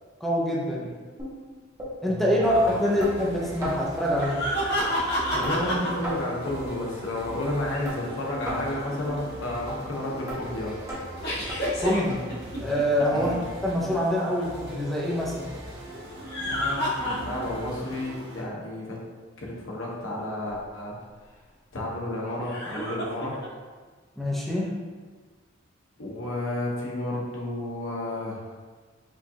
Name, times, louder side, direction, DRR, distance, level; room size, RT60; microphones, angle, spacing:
voice 1, 0.2-0.9 2.0-4.5 11.8-12.2 12.6-13.4 13.6-15.5 24.2-24.8, equal, ahead, -5 dB, 0.6 m, -25 dB
sound 1, 1.2-1.3 1.8-1.9 2.4-2.5 3.0-3.1 3.6-3.7 4.2-4.3 4.8-4.9 5.4-5.6 6.0-6.2 6.6-6.8 7.3-7.4 7.8-8.0 8.5-8.6 9.1-9.2 9.7-9.8 10.3-10.4 10.9-11.0 11.5-11.6 12.1-12.2 12.7-12.8 13.3-13.4 13.9-14.0, right 1 dB, 15° right, 1.0 m, -35 dB
voice 2, 2.1-2.8 5.3-10.7 13.1-13.4 16.4-19.0 19.4-21.0 21.7-23.4 26.0-28.5, left 1 dB, 85° left, -4 dB, 0.9 m, -31 dB
sound 2, 2.4-18.4, equal, 55° right, 0.7 m, -40 dB
sound 3, 4.2-5.9 11.2-13.3 16.1-17.6 18.0-18.1 20.5-20.6 22.4-23.5, equal, 55° left, 1.2 m, -29 dB
5.0 x 2.4 x 2.8 m, 1.4 s
head